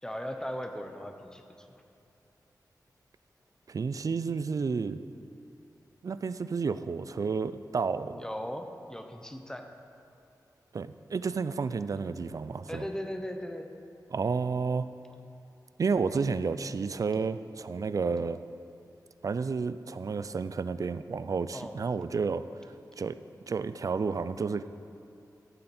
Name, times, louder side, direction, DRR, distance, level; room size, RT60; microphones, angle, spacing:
voice 1, 0.0-1.8 8.1-9.7 12.7-13.7 21.5-21.8, equal, 10° left, 5 dB, 0.9 m, -38 dB
voice 2, 3.7-5.0 6.0-8.2 10.7-12.8 14.1-14.9 15.8-18.4 19.2-22.4 23.0-23.2 23.5-24.6, right 5 dB, 55° right, 13 dB, 0.4 m, -31 dB
13.0 x 7.6 x 4.3 m, 2.8 s
wide cardioid pair, 80°, 7 cm